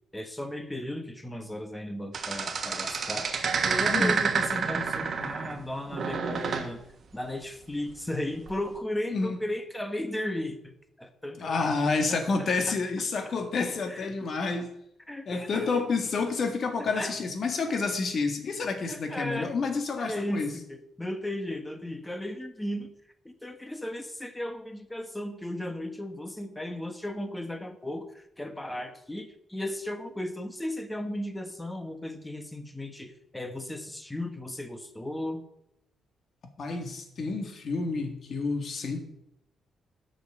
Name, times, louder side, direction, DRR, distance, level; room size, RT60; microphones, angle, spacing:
voice 1, 0.1-3.3 3.6-6.8 7.1-10.7 11.0-11.7 12.1-12.8 13.9-14.1 15.1-15.7 16.8-17.2 18.9-19.5 20.0-22.9 23.2-35.4, left 1 dB, 10° left, 8 dB, 1.2 m, -35 dB
sound 1, 2.1-5.6 5.9-6.7 8.5-8.7, right 5 dB, 50° right, 1.4 m, -29 dB
voice 2, 11.4-14.7 15.3-20.5 36.6-39.0, left 4 dB, 55° left, 6 dB, 1.8 m, -29 dB
8.6 x 6.3 x 6.7 m, 0.80 s
cardioid pair, 95°, 0 cm